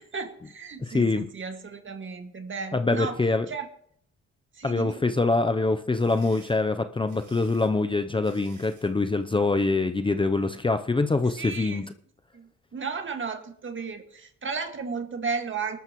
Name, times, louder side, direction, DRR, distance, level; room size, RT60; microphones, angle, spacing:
voice 1, 0.0-3.7 4.5-5.0 11.4-11.8 12.3-15.8, right 5 dB, 40° right, 6 dB, 2.1 m, -34 dB
voice 2, 0.8-1.3 2.7-3.5 4.6-11.8, left 3 dB, 15° left, 8 dB, 0.7 m, -24 dB
Salt mill, 5.7-9.0, right 6 dB, 75° right, 4.6 m, -55 dB
21.0 x 13.0 x 3.1 m, 0.65 s
cardioid pair, 90°, 30 cm